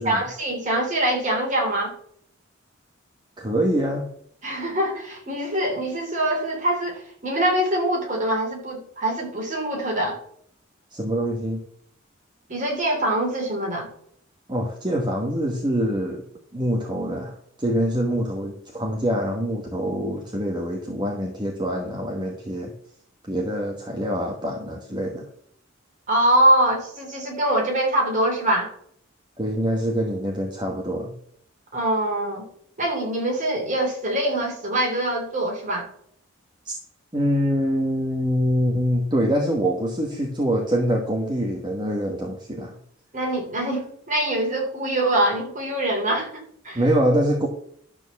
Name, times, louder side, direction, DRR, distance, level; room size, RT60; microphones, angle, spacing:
voice 1, 0.1-1.9 4.4-10.2 12.5-13.9 26.1-28.7 31.7-32.5 32.8-35.9 43.1-46.8, right 1 dB, 40° right, 0 dB, 3.4 m, -24 dB
voice 2, 3.4-4.1 10.9-11.6 14.5-16.3 16.5-22.7 23.3-25.2 29.4-31.1 36.6-36.7 37.1-42.7 46.7-47.5, equal, 25° right, 0 dB, 1.3 m, -25 dB
12.0 x 4.4 x 7.0 m, 0.64 s
head